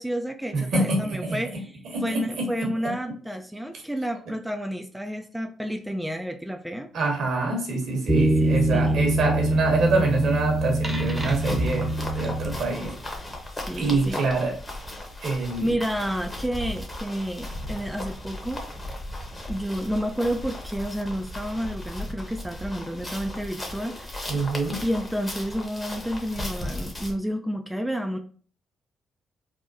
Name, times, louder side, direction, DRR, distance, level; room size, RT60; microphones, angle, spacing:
voice 1, 0.0-6.9 8.2-9.0 13.7-14.2 15.3-18.6 19.5-24.3 24.8-28.2, equal, 5° right, 4 dB, 0.4 m, -30 dB
voice 2, 0.5-1.2 1.9-2.5 2.8-2.9 6.9-12.9 13.8-14.5 15.2-15.7 24.3-24.8, right 3 dB, 65° right, 1 dB, 1.0 m, -25 dB
sound 1, 8.1-13.0, right 1 dB, 20° right, 0.8 m, -24 dB
sound 2, 11.1-27.1, left 1 dB, 25° left, 1.1 m, -36 dB
3.5 x 2.2 x 2.7 m, 0.43 s
hypercardioid pair, 45°, 0 cm